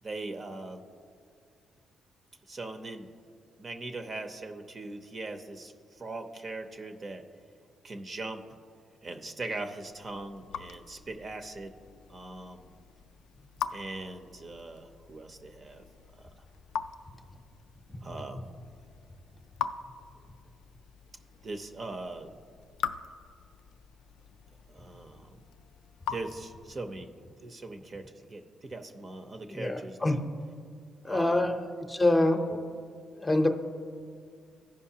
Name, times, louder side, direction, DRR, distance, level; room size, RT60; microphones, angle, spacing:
voice 1, 0.0-0.8 2.5-3.1 3.6-7.2 7.8-8.4 9.0-11.7 12.1-12.7 13.7-15.8 16.1-16.3 18.0-18.5 21.4-22.3 24.7-25.4 26.1-27.1 27.4-30.2 31.0-31.5, right 2 dB, 40° right, 5 dB, 0.7 m, -40 dB
Raindrop / Drip, 9.8-27.0, left 8 dB, 90° left, 0.3 m, -43 dB
voice 2, 29.5-30.2 31.0-31.6 31.9-32.7 33.2-33.5, left 1 dB, 15° left, 4 dB, 0.8 m, -26 dB
15.0 x 5.2 x 2.8 m, 2.3 s
cardioid pair, 90°, 0 cm